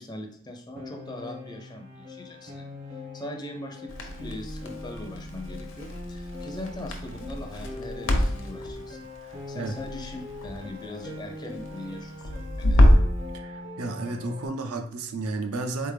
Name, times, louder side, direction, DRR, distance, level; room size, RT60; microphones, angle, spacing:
voice 1, 0.0-12.9, left 1 dB, 20° left, 4 dB, 0.4 m, -41 dB
Piano, 0.8-14.5, left 2 dB, 60° right, 0.9 m, -41 dB
Crackle, 3.9-13.2, left 1 dB, 65° left, 0.7 m, -26 dB
voice 2, 13.3-15.9, right 2 dB, 85° right, 6 dB, 0.5 m, -32 dB
4.0 x 3.4 x 3.3 m, 0.62 s
head